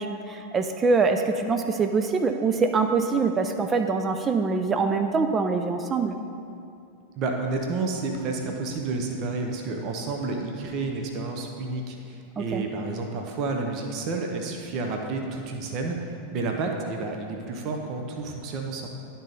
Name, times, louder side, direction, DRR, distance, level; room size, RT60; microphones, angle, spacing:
voice 1, 0.0-6.2 12.4-12.6, right 4 dB, 20° right, 6 dB, 0.4 m, -24 dB
voice 2, 7.2-18.9, right 3 dB, 40° right, 2 dB, 0.8 m, -30 dB
11.5 x 4.0 x 4.0 m, 2.5 s
figure-of-eight pair, 90°, 0 cm